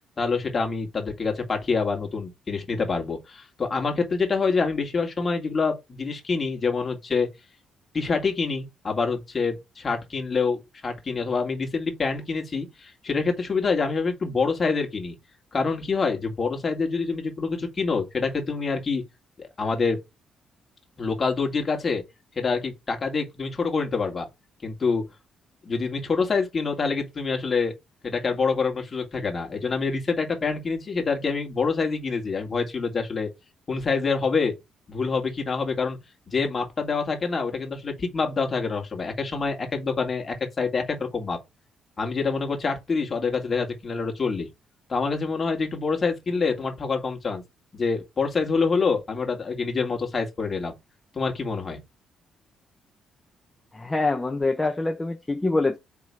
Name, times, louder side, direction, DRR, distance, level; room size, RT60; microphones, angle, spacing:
voice 1, 0.2-7.3 7.9-15.2 15.5-19.0 19.4-20.0 21.0-22.0 22.4-24.3 24.6-25.0 25.6-27.7 28.0-33.3 33.7-34.5 34.9-36.0 36.3-41.4 42.0-44.5 44.9-47.4 47.7-50.7 51.1-51.8, left 4 dB, 35° left, 2.1 m, -26 dB
voice 2, 53.7-55.8, left 2 dB, 15° left, 0.8 m, -25 dB
4.8 x 3.7 x 5.5 m
cardioid pair, 90°, 0 cm